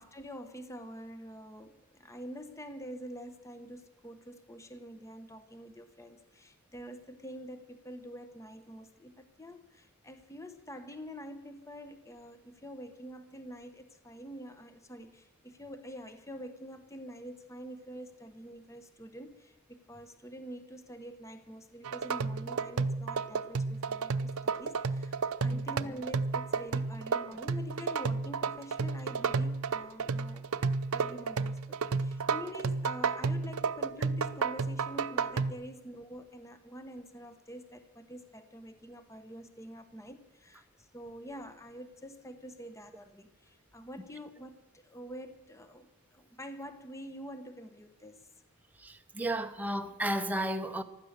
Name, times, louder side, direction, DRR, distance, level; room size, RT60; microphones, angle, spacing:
voice 1, 0.0-30.4 30.9-48.2, equal, 15° left, 0.9 m, -46 dB
sound 1, 21.8-35.5, right 4 dB, 70° right, 0.6 m, -32 dB
voice 2, 48.8-50.8, right 1 dB, 5° right, 0.9 m, -33 dB
15.5 x 12.0 x 6.7 m
head